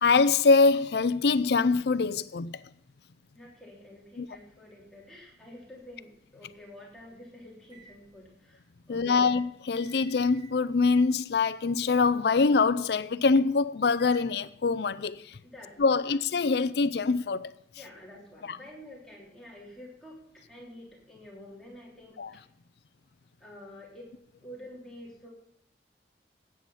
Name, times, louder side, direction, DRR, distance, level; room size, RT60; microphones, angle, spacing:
voice 1, 0.0-2.6 4.2-4.3 8.9-15.4 15.8-17.5 18.5-18.6 22.2-22.3, left 4 dB, 70° left, 0.5 m, -24 dB
voice 2, 3.3-9.3 15.4-16.2 17.7-22.4 23.4-24.1 24.4-25.3, left 1 dB, 5° left, 3.4 m, -49 dB
sound 1, 7.7-7.9 9.2-9.4 9.7-10.5 10.8-11.0 11.8-11.9 14.0-14.3, right 3 dB, 25° right, 3.8 m, -52 dB
13.5 x 9.1 x 5.6 m
head